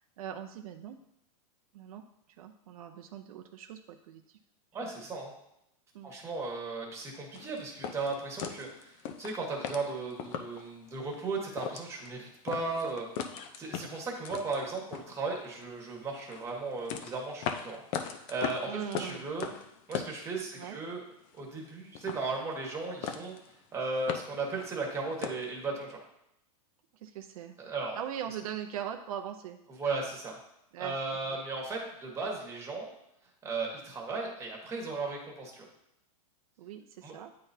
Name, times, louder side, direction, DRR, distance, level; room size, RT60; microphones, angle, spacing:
voice 1, 0.2-1.0 1.7-2.0 2.4-4.4 5.9-6.1 18.7-19.3 20.5-20.8 26.9-27.5 27.9-29.6 30.7-31.4 36.6-37.3, right 9 dB, 75° right, 5 dB, 0.5 m, -41 dB
voice 2, 4.7-5.3 6.0-13.3 13.6-19.5 19.9-21.0 21.3-23.3 23.7-26.0 27.6-28.0 29.7-30.3 30.8-32.9 33.4-35.7 37.0-37.1, right 3 dB, 15° right, 0 dB, 1.4 m, -36 dB
sound 1, 7.3-10.7 11.1-11.2 11.5-12.1 12.5-15.6 16.1-20.9 21.1-21.7 21.9-22.8 23.0-23.5 23.8-25.5, left 8 dB, 40° left, 0.6 m, -39 dB
9.4 x 3.9 x 2.7 m, 0.81 s
supercardioid pair, 145°, 19 cm